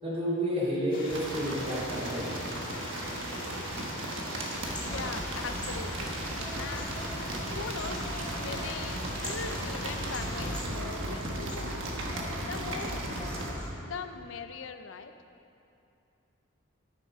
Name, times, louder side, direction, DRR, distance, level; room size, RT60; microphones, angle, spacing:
voice 1, 0.0-2.2, equal, 35° right, -8 dB, 2.8 m, -30 dB
sound 1, 0.9-10.6, left 2 dB, 45° left, 2.1 m, -43 dB
sound 2, 1.1-13.5, right 1 dB, 75° right, 1.4 m, -36 dB
sound 3, 4.6-13.7, left 1 dB, 5° left, 1.3 m, -40 dB
voice 2, 4.8-6.2 6.6-7.0 7.5-8.1 8.4-11.9 12.5-13.0 13.8-15.1, left 5 dB, 70° left, 9 dB, 0.6 m, -40 dB
13.5 x 6.7 x 5.4 m, 2.7 s
head